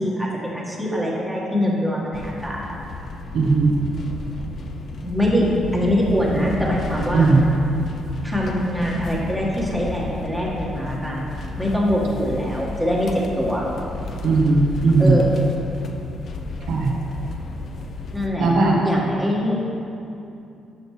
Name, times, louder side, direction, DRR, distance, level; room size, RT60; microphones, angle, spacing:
voice 1, 0.0-2.6 5.0-7.4 8.2-13.7 15.0-15.4 18.1-18.5 18.8-19.6, equal, ahead, -5 dB, 1.9 m, -23 dB
sound 1, 2.1-18.3, left 3 dB, 55° left, 0.7 m, -33 dB
voice 2, 3.3-3.7 7.1-7.5 14.2-15.2 16.7-16.9 18.4-18.8, right 3 dB, 75° right, -2 dB, 1.2 m, -17 dB
11.5 x 6.5 x 3.3 m, 2.8 s
cardioid pair, 90°, 0 cm